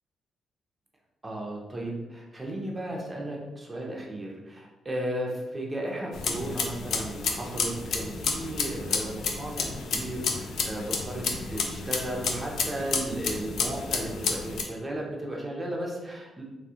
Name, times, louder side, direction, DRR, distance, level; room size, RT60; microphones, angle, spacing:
voice 1, 1.2-16.4, right 1 dB, 20° right, -2 dB, 0.5 m, -35 dB
sound 1, 6.1-14.6, left 4 dB, 75° left, 0.3 m, -31 dB
2.3 x 2.1 x 2.7 m, 1.1 s
cardioid pair, 95°, 0 cm